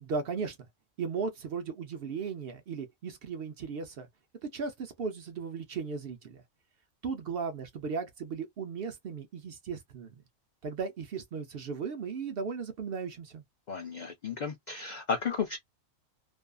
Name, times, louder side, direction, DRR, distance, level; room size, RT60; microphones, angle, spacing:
voice 1, 0.0-0.6 1.0-4.1 4.4-6.4 7.0-10.1 10.6-13.4, right 5 dB, 60° right, 0.6 m, -36 dB
voice 2, 13.7-15.6, left 5 dB, 75° left, 0.4 m, -33 dB
2.6 x 2.4 x 2.2 m
omnidirectional pair, 1.4 m